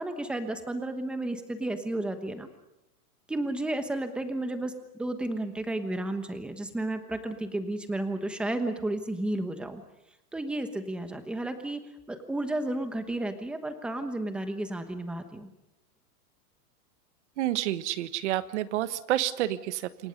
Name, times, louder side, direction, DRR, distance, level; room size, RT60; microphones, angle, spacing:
voice 1, 0.0-2.5 3.3-4.7 5.0-9.8 10.3-11.8 12.1-15.5, right 1 dB, ahead, 8 dB, 1.1 m, -32 dB
voice 2, 17.4-20.1, right 13 dB, 50° right, 13 dB, 1.4 m, -29 dB
27.5 x 23.0 x 5.4 m, 0.90 s
supercardioid pair, 170°, 45 cm